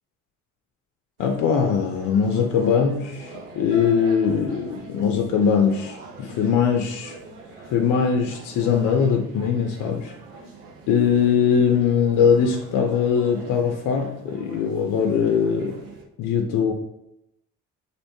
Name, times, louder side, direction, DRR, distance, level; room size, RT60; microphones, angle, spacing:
voice 1, 1.2-7.2 7.7-10.1 10.9-15.8 16.2-16.7, left 6 dB, 55° left, 3 dB, 0.5 m, -21 dB
sound 1, 1.2-16.0, right 3 dB, 80° right, 0.6 m, -43 dB
sound 2, 3.7-7.6 8.1-8.4 8.8-8.9, left 2 dB, 50° right, 1.3 m, -45 dB
2.7 x 2.0 x 3.0 m, 0.82 s
hypercardioid pair, 50°, 38 cm